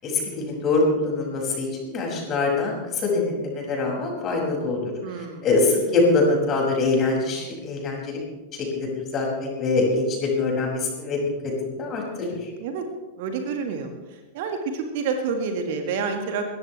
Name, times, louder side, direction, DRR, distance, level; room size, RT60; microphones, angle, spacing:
voice 1, 0.0-4.9 5.2-8.2 8.5-12.5, left 3 dB, 30° left, -1 dB, 6.4 m, -24 dB
voice 2, 5.0-5.5 12.6-12.8 13.2-13.9 14.3-16.5, right 5 dB, 50° right, 5 dB, 1.9 m, -28 dB
22.0 x 17.5 x 3.4 m, 1.2 s
figure-of-eight pair, 90°, 0 cm